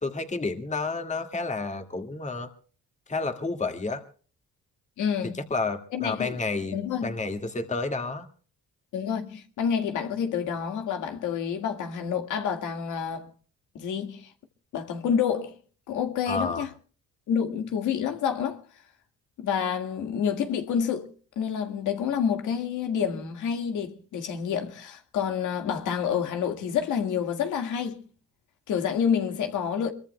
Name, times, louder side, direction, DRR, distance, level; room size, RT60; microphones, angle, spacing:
voice 1, 0.0-2.5 3.1-4.0 5.5-8.3 16.3-16.6, left 3 dB, 25° left, 2.0 m, -30 dB
voice 2, 5.0-5.4 5.9-6.4 6.7-7.1 8.9-13.3 13.8-14.3 14.7-15.6 15.9-16.7 17.3-18.6 19.4-21.1 21.4-28.0 28.7-29.9, left 7 dB, 80° left, 1.8 m, -28 dB
23.5 x 23.0 x 2.2 m
cardioid pair, 90°, 30 cm